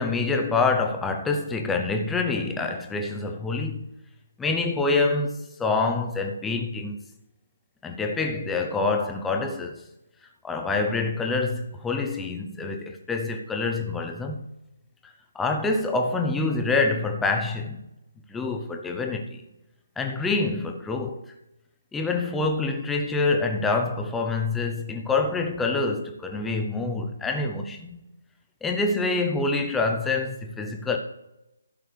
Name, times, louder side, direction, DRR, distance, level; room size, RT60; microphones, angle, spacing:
voice 1, 0.0-3.8 4.4-7.0 7.8-9.8 10.4-14.4 15.3-17.8 18.3-19.4 20.0-21.2 21.9-28.0 28.6-31.0, left 3 dB, 5° left, 0.7 m, -26 dB
15.5 x 6.3 x 3.3 m
hypercardioid pair, 165°, 0 cm